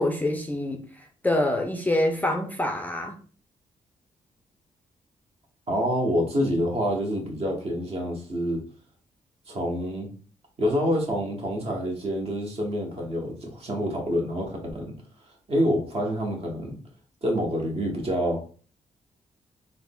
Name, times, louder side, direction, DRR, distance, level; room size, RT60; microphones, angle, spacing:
voice 1, 0.0-3.2, left 1 dB, 10° left, 0.4 m, -26 dB
voice 2, 5.7-8.6 9.5-10.1 10.6-14.9 15.5-16.8 17.2-18.4, equal, 45° right, 1.0 m, -27 dB
3.5 x 2.1 x 2.3 m
cardioid pair, 75°, 14 cm